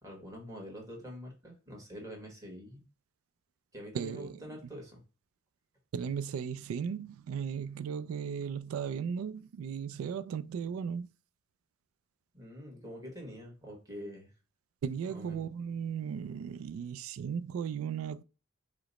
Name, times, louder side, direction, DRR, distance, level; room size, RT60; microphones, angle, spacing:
voice 1, 0.0-2.8 3.7-5.0 12.3-14.3 15.1-15.5, equal, 15° right, 1.3 m, -45 dB
voice 2, 3.9-4.4 5.9-11.1 14.8-18.2, right 7 dB, 75° right, 0.3 m, -36 dB
4.8 x 2.0 x 3.9 m
head